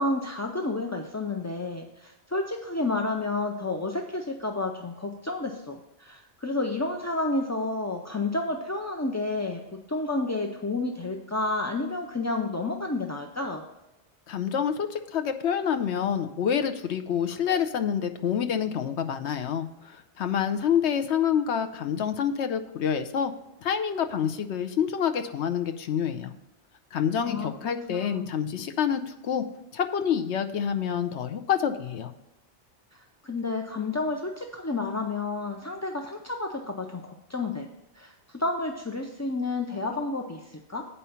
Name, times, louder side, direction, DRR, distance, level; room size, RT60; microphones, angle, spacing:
voice 1, 0.0-13.6 27.3-27.5 27.9-28.3 33.2-37.7 38.0-40.9, left 2 dB, 20° left, 2 dB, 0.4 m, -30 dB
voice 2, 14.3-23.3 23.6-26.3 26.9-29.4 29.7-32.1, left 8 dB, 75° left, 7 dB, 1.0 m, -27 dB
8.7 x 5.6 x 5.6 m, 0.95 s
omnidirectional pair, 1.2 m